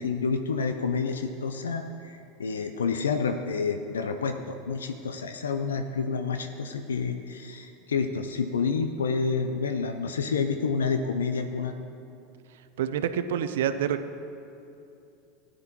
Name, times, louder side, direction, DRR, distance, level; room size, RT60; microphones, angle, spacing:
voice 1, 0.0-11.7, left 5 dB, 80° left, 7 dB, 0.5 m, -29 dB
voice 2, 12.8-14.2, right 9 dB, 65° right, 11 dB, 0.6 m, -28 dB
16.5 x 10.0 x 3.0 m, 2.7 s
figure-of-eight pair, 85°, 0 cm